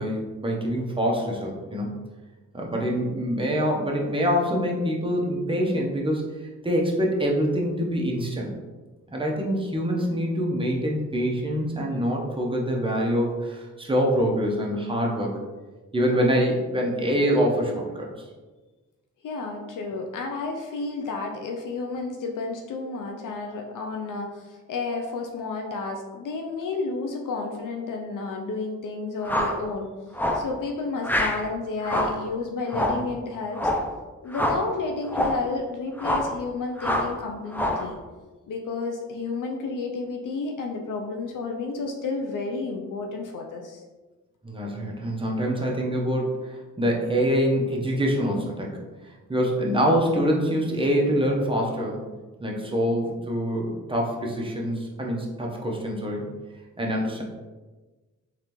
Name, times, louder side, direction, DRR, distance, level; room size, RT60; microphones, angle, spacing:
voice 1, 0.0-1.9 2.5-6.2 6.6-8.5 9.1-15.3 15.9-18.1 32.8-33.0 44.4-48.7 49.3-52.0 52.4-56.3 56.8-57.2, equal, 15° right, -1 dB, 0.9 m, -25 dB
voice 2, 19.2-29.9 30.3-33.7 34.2-38.0 38.5-43.8, left 3 dB, 75° left, 2 dB, 0.5 m, -31 dB
sound 1, 29.2-29.6 30.1-30.5 31.0-31.4 31.8-32.2 32.7-33.1 33.5-33.9 34.3-34.7 35.1-35.4 36.0-36.3 36.8-37.2 37.5-37.9, left 1 dB, 5° left, 0.5 m, -25 dB
3.6 x 3.2 x 3.0 m, 1.2 s
cardioid pair, 65°, 32 cm